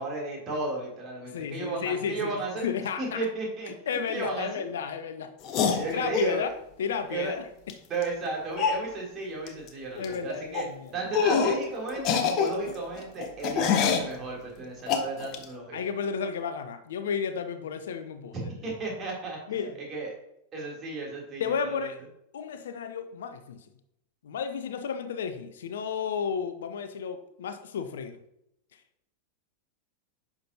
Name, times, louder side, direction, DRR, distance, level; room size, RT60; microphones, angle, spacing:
voice 1, 0.0-2.7 3.0-3.7 4.1-4.6 5.7-6.5 7.1-7.3 7.9-10.6 10.9-15.9 18.5-19.4 19.9-20.1 20.5-21.9, right 3 dB, 25° right, -2 dB, 3.1 m, -34 dB
voice 2, 1.3-2.4 2.6-3.3 3.7-5.3 5.6-6.5 6.8-7.5 10.0-11.0 15.7-18.4 19.5-19.8 21.4-22.0 22.3-23.7 24.2-28.2 28.7-28.8, left 6 dB, 60° left, 9 dB, 0.6 m, -32 dB
sound 1, 5.4-6.3 7.7-7.8 8.0-8.1 8.6-8.8 9.5-9.7 10.0-10.1 10.5-10.7 11.1-11.6 12.0-14.1 14.9-15.4, left 6 dB, 40° left, 0.9 m, -26 dB
10.0 x 5.9 x 2.8 m, 0.79 s
figure-of-eight pair, 90°, 0 cm